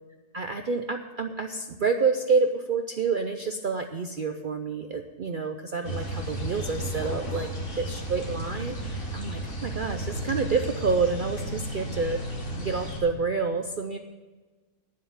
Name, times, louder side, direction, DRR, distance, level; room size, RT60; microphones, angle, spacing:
voice 1, 0.3-7.5 7.8-12.2 12.5-14.0, right 4 dB, 75° right, 6 dB, 0.4 m, -28 dB
sound 1, 5.8-13.0, right 1 dB, 50° left, 2.9 m, -33 dB
9.4 x 7.5 x 8.8 m, 1.3 s
omnidirectional pair, 1.6 m